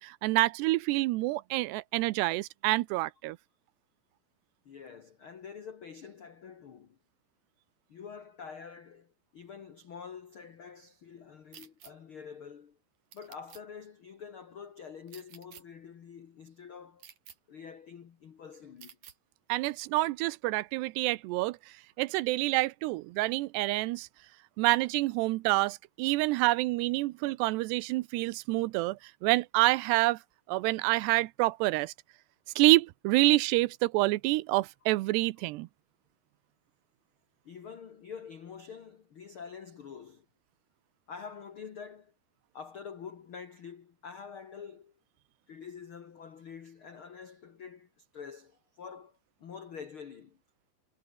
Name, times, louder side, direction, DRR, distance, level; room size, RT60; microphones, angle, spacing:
voice 1, 0.0-3.4 19.5-21.6 22.0-24.1 24.6-30.2 30.5-31.9 32.6-35.7, right 20 dB, 85° right, 2.8 m, -27 dB
voice 2, 4.6-7.0 7.9-12.8 13.1-17.1 17.5-19.0 19.6-19.7 37.4-40.2 41.1-42.1 42.5-44.9 45.5-50.4, left 6 dB, 80° left, 1.1 m, -46 dB
sound 1, 11.5-11.9 13.1-13.6 15.1-15.6 17.0-17.4 18.8-19.2, right 9 dB, 50° right, 3.2 m, -51 dB
omnidirectional pair, 4.8 m